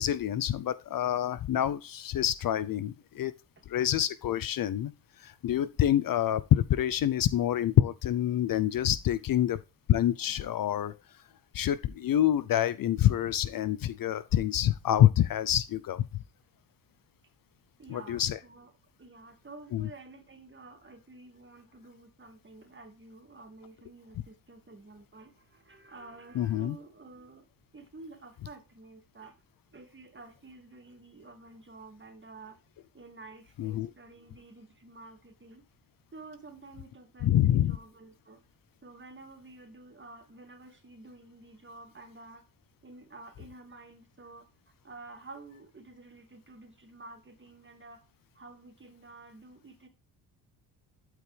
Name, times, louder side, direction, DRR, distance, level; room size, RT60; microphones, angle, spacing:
voice 1, 0.0-3.3 3.7-4.9 5.2-9.6 9.9-10.9 11.5-16.0 17.9-18.4 19.7-19.9 26.4-26.7 33.6-33.9 37.2-37.8, left 11 dB, 50° left, 0.6 m, -26 dB
voice 2, 17.8-18.7 19.0-27.4 27.7-29.3 29.7-32.6 32.9-35.6 36.1-38.4 38.8-42.4 42.8-44.5 44.8-48.0 48.3-49.9, right 3 dB, 25° right, 2.5 m, -50 dB
12.0 x 4.7 x 3.4 m
supercardioid pair, 70°, 42 cm